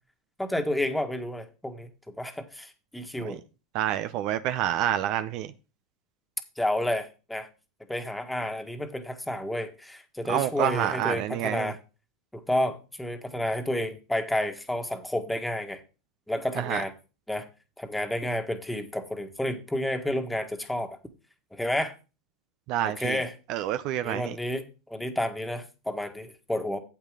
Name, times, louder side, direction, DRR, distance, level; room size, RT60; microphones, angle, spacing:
voice 1, 0.4-3.4 6.6-7.5 7.9-11.8 12.3-15.8 16.3-16.9 17.3-17.4 17.8-21.0 21.5-21.9 22.8-23.3 24.0-26.8, left 1 dB, 5° left, 1.6 m, -30 dB
voice 2, 3.7-5.5 10.3-11.7 16.6-16.8 22.7-23.2 23.5-24.4, right 12 dB, 55° right, 0.6 m, -28 dB
8.8 x 8.1 x 3.7 m
hypercardioid pair, 90°, 0 cm